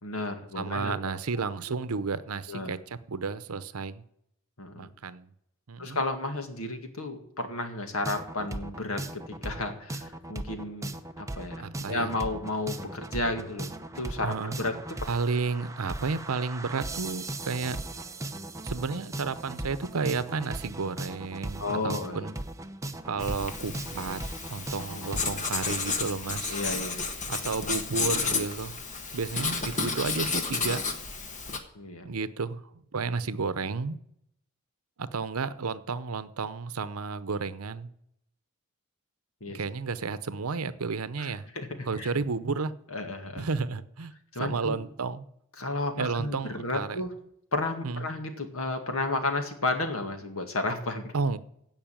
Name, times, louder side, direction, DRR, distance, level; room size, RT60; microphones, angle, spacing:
voice 1, 0.0-0.9 2.5-2.7 4.6-4.9 5.8-15.0 21.6-22.3 24.9-25.1 26.5-27.1 29.4-29.6 31.7-32.1 39.4-39.6 41.2-42.1 42.9-43.5 44.3-44.8 45.6-47.1 47.5-51.1, left 2 dB, 70° left, 2.1 m, -33 dB
voice 2, 0.6-2.8 3.1-4.0 4.8-5.3 5.7-6.0 11.5-12.1 14.2-14.5 15.1-17.8 18.6-22.3 23.1-24.2 24.5-26.6 27.3-28.8 29.1-30.8 32.0-32.6 32.9-34.0 35.0-37.9 39.5-41.5 41.9-42.7 43.4-44.1 44.4-45.2 46.0-47.0 47.8-48.1 51.1-51.4, right 4 dB, 85° right, 0.8 m, -32 dB
sound 1, 8.0-25.4, right 1 dB, 15° right, 0.8 m, -38 dB
Writing, 23.2-31.6, left 4 dB, 35° left, 1.4 m, -32 dB
16.0 x 5.6 x 8.9 m
head